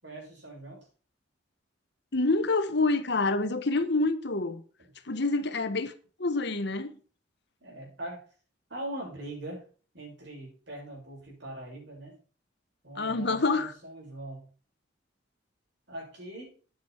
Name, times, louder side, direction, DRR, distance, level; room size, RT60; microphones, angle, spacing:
voice 1, 0.0-0.9 7.6-8.2 8.7-9.7 9.9-12.2 12.8-14.5 15.9-16.5, right 1 dB, 60° right, 7.2 m, -41 dB
voice 2, 2.1-4.6 5.0-5.9 6.2-7.0 13.0-13.7, left 3 dB, 60° left, 1.2 m, -27 dB
9.8 x 9.3 x 4.6 m
head